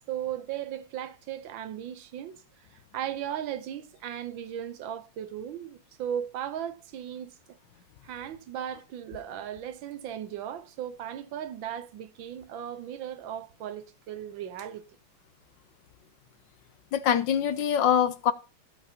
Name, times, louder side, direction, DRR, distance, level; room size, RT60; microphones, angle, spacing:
voice 1, 0.1-2.7 2.9-7.6 8.0-14.8, right 10 dB, 70° right, 1.5 m, -37 dB
voice 2, 16.9-18.3, left 9 dB, 70° left, 1.2 m, -24 dB
14.5 x 7.7 x 2.8 m
omnidirectional pair, 2.2 m